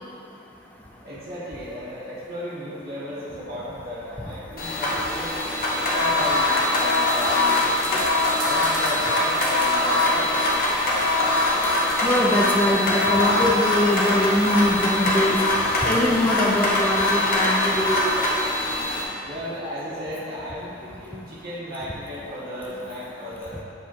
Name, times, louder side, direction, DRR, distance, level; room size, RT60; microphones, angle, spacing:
voice 1, 1.0-5.3 5.7-8.1 8.4-10.3 19.2-23.6, equal, 55° right, -9 dB, 1.4 m, -35 dB
sound 1, 4.6-19.0, left 2 dB, 50° left, 1.1 m, -22 dB
sound 2, 5.5-16.2, right 1 dB, 80° right, 1.3 m, -39 dB
voice 2, 12.0-15.4 15.8-18.0, left 1 dB, 10° left, -4 dB, 0.6 m, -22 dB
7.2 x 3.6 x 4.4 m, 2.5 s
head